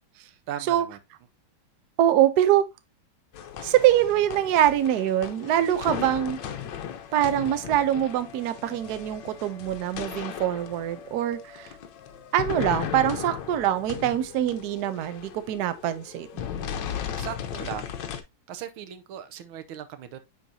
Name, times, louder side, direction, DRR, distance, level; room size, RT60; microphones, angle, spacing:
voice 1, 0.5-1.0 17.2-17.9 18.5-20.2, right 10 dB, 85° right, 1.6 m, -37 dB
voice 2, 2.0-2.7 3.6-6.4 7.1-11.8 12.3-16.3, right 12 dB, 65° right, 1.1 m, -24 dB
sound 1, 3.3-18.2, left 9 dB, 70° left, 1.3 m, -37 dB
9.3 x 4.0 x 2.6 m
omnidirectional pair, 2.2 m